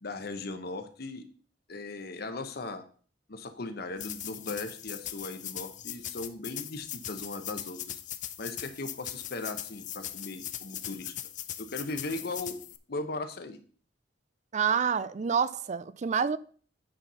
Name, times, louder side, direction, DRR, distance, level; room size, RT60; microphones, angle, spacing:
voice 1, 0.0-1.3 1.7-2.8 3.3-8.0 8.4-11.1 11.6-13.6, left 2 dB, 60° left, 0.9 m, -38 dB
sound 1, 4.0-12.8, left 11 dB, 45° left, 0.5 m, -40 dB
voice 2, 14.5-16.4, right 6 dB, 40° right, 0.4 m, -27 dB
8.9 x 4.4 x 5.5 m
head